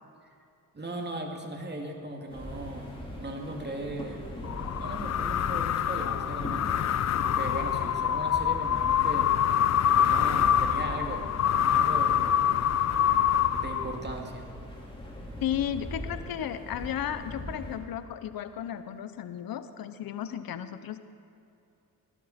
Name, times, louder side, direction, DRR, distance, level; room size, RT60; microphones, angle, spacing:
voice 1, 0.7-4.3 4.8-6.7 7.3-9.4 9.8-12.5 13.5-14.5, right 2 dB, 30° right, 2 dB, 2.3 m, -38 dB
sound 1, 2.3-17.8, left 1 dB, 15° left, 3.9 m, -41 dB
sound 2, 4.4-14.2, left 9 dB, 50° left, 0.5 m, -25 dB
voice 2, 15.4-21.0, left 10 dB, 80° left, 11 dB, 0.8 m, -34 dB
17.5 x 12.0 x 4.3 m, 2.7 s
cardioid pair, 65°, 35 cm